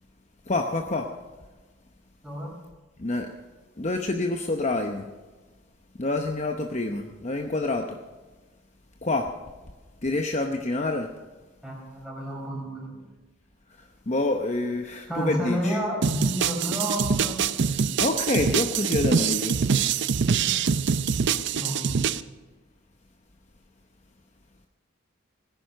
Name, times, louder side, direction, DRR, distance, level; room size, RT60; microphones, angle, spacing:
voice 1, 0.5-1.1 3.0-3.3 3.8-5.1 6.0-8.0 9.0-9.3 10.0-11.1 13.8-15.8 17.7-19.5, left 2 dB, 30° left, 4 dB, 0.8 m, -27 dB
voice 2, 11.6-13.0 15.1-17.5 21.3-21.9, equal, 5° right, -2 dB, 4.5 m, -31 dB
sound 1, 16.0-22.2, right 6 dB, 55° right, 0.5 m, -24 dB
18.0 x 10.5 x 6.6 m, 1.3 s
head